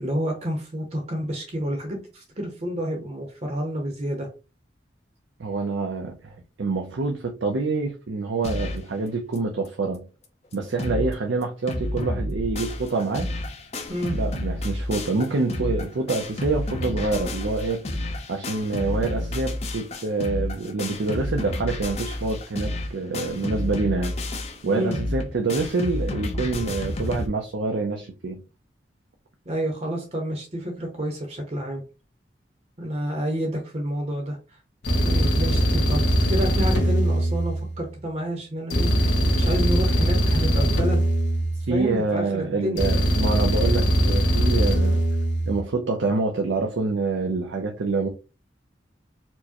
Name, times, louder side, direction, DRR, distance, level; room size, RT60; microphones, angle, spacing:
voice 1, 0.0-4.3 13.9-14.2 24.7-25.0 29.5-31.8 32.8-34.6 35.0-41.0 41.5-42.9, equal, 35° right, 2 dB, 0.7 m, -29 dB
voice 2, 5.4-10.1 10.5-13.3 14.1-17.8 18.3-24.2 24.6-28.4 41.7-45.0 45.5-48.1, right 3 dB, 80° right, 3 dB, 0.5 m, -26 dB
sound 1, 8.4-8.9 9.3-9.4 9.6-9.7 10.2-10.3 10.5-11.1 11.4-27.3, left 1 dB, 35° left, 0.5 m, -30 dB
sound 2, 34.8-38.0 38.7-42.0 42.8-45.6, equal, 80° left, 1.1 m, -21 dB
4.4 x 2.1 x 2.8 m, 0.31 s
head